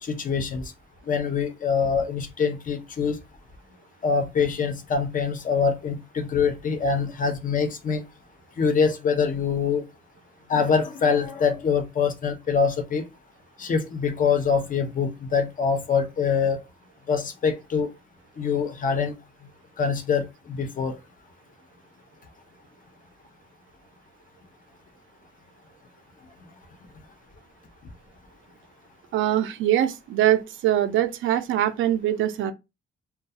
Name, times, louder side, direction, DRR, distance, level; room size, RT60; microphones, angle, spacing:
voice 1, 0.0-0.7 1.1-3.2 4.0-8.0 8.6-9.8 10.5-13.0 13.6-16.6 17.1-17.9 18.4-19.1 19.8-21.0, left 5 dB, 40° left, 0.7 m, -24 dB
voice 2, 29.1-32.5, right 12 dB, 80° right, 0.4 m, -23 dB
2.3 x 2.3 x 2.7 m
cardioid pair, 90°, 20 cm